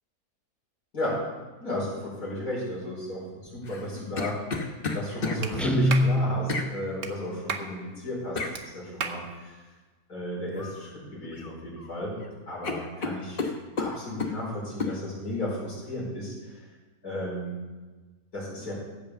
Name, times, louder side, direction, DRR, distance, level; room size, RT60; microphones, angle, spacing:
voice 1, 1.6-9.6 10.1-12.1 12.5-13.5 13.8-16.5 17.0-17.6 18.3-18.7, left 1 dB, 75° left, -6 dB, 5.4 m, -34 dB
sound 1, 3.6-5.4 6.5-6.7 8.4-8.6 10.6-10.8 11.2-11.9 12.2-12.3 12.6-14.4 14.8-15.0, left 4 dB, 40° left, 1.1 m, -32 dB
Clapping, 5.4-5.5 5.9-6.1 7.0-7.1 7.5-7.7 8.5-8.6 9.0-9.2, right 6 dB, 60° right, 1.1 m, -32 dB
Guitar, 5.6-6.8, equal, ahead, 0.4 m, -24 dB
15.5 x 5.4 x 6.7 m, 1.3 s
omnidirectional pair, 1.6 m